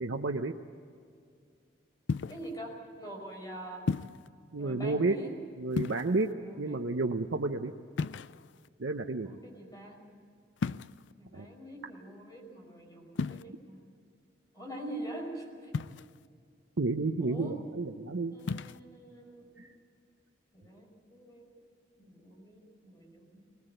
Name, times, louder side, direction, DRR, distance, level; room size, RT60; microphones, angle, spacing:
voice 1, 0.0-0.5 4.5-5.2 5.6-6.3 6.6-7.7 8.8-9.3 11.3-11.5 16.8-18.3 19.6-19.7, right 3 dB, 85° right, 3 dB, 0.8 m, -31 dB
sound 1, 2.1-2.5 3.9-4.3 5.7-6.3 8.0-8.7 10.6-11.1 13.1-13.4 15.7-16.3 18.4-18.8, left 4 dB, 75° left, 0.4 m, -34 dB
voice 2, 2.3-3.8 4.6-5.3 6.3-6.8 9.2-10.0 11.2-13.8 14.5-15.5 17.2-17.6 18.3-19.7 20.5-20.8 21.1-21.5 22.0-23.4, right 1 dB, 20° left, 1 dB, 5.2 m, -44 dB
20.0 x 20.0 x 7.9 m, 2.4 s
head